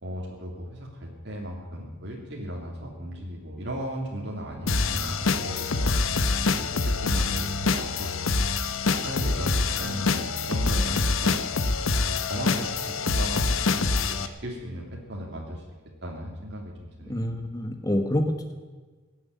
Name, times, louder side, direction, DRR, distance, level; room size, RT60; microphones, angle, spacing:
voice 1, 0.0-6.0 6.6-8.5 9.0-11.4 12.0-15.6 16.0-17.2, equal, 55° right, -2 dB, 2.7 m, -36 dB
sound 1, 4.7-14.3, left 4 dB, 75° left, 0.9 m, -25 dB
voice 2, 17.1-18.5, left 1 dB, 15° left, 6 dB, 1.3 m, -27 dB
17.5 x 7.8 x 9.6 m, 1.4 s
head